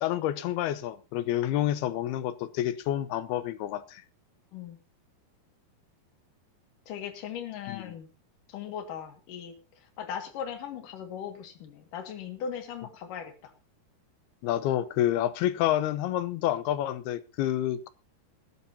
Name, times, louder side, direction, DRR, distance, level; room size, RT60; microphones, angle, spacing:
voice 1, 0.0-4.0 7.7-8.0 14.4-17.9, left 12 dB, 80° left, 2.7 m, -28 dB
voice 2, 6.9-8.1 8.5-9.5 10.0-13.5, left 8 dB, 60° left, 3.2 m, -38 dB
20.5 x 13.0 x 2.8 m
omnidirectional pair, 4.6 m